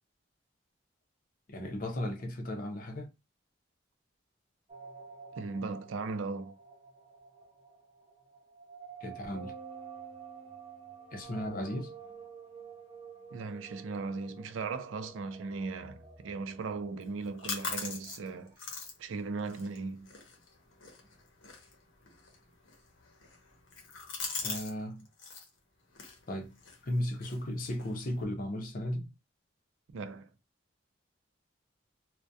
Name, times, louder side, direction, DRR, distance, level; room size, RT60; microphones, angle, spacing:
voice 1, 1.5-3.1 9.0-9.5 11.1-11.9 24.4-25.1 26.3-26.6 26.8-29.1, left 1 dB, 45° left, 0.6 m, -35 dB
sound 1, 4.7-18.5, right 6 dB, 30° right, 0.6 m, -51 dB
voice 2, 5.4-6.6 13.3-18.5 19.0-20.1 29.9-30.3, right 4 dB, 85° right, 0.4 m, -37 dB
sound 2, 9.3-11.9, right 3 dB, 60° right, 0.9 m, -51 dB
sound 3, 17.0-24.7 25.0-25.5 25.9-28.2, left 4 dB, 80° left, 0.7 m, -43 dB
2.3 x 2.1 x 2.6 m
head